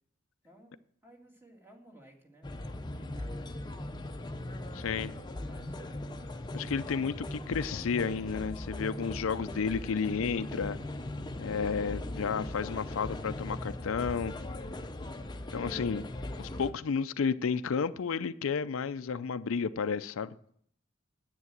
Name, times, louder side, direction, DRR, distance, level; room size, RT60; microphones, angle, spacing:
voice 1, 0.4-4.2 4.9-6.3, right 1 dB, 10° right, 1.9 m, -58 dB
sound 1, 2.4-16.7, left 1 dB, 20° left, 0.7 m, -39 dB
voice 2, 4.7-5.1 6.5-10.8 11.4-14.3 15.5-16.1 16.4-20.3, left 5 dB, 85° left, 0.5 m, -32 dB
9.7 x 8.7 x 7.5 m
head